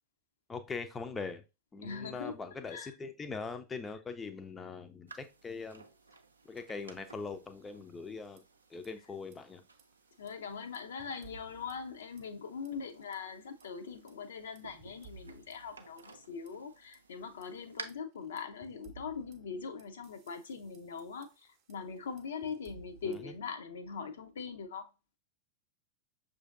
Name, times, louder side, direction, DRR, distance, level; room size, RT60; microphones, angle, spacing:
voice 1, 0.5-1.4 1.7-5.8 6.5-8.4 8.7-9.6 23.0-23.3, left 4 dB, 15° left, 0.4 m, -41 dB
voice 2, 1.8-2.4 2.7-2.9 10.2-24.9, left 5 dB, 65° left, 0.5 m, -42 dB
sound 1, 5.1-17.8, right 4 dB, 75° right, 0.5 m, -55 dB
sound 2, 8.1-8.9 9.1-9.4 9.7-12.4 12.6-13.2 13.6-17.0 17.4-23.4, right 4 dB, 40° right, 0.7 m, -58 dB
6.2 x 2.6 x 2.4 m
figure-of-eight pair, 90°, 0 cm